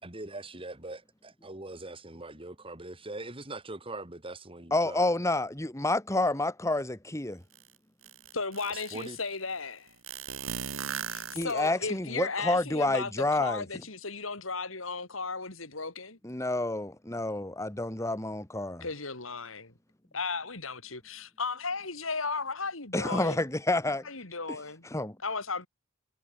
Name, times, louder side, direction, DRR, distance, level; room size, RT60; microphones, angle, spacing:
voice 1, 0.0-5.1 8.7-9.2, right 2 dB, 25° right, 3.1 m, -42 dB
voice 2, 4.7-7.4 11.4-13.6 16.2-18.8 22.9-24.0 24.9-25.2, left 2 dB, 15° left, 1.8 m, -29 dB
sound 1, 7.5-7.6 8.0-9.2 10.0-11.9, right 7 dB, 90° right, 2.3 m, -37 dB
voice 3, 8.3-9.9 11.1-16.2 18.8-19.7 20.1-23.4 24.0-24.9 25.2-25.7, left 4 dB, 80° left, 4.6 m, -35 dB
head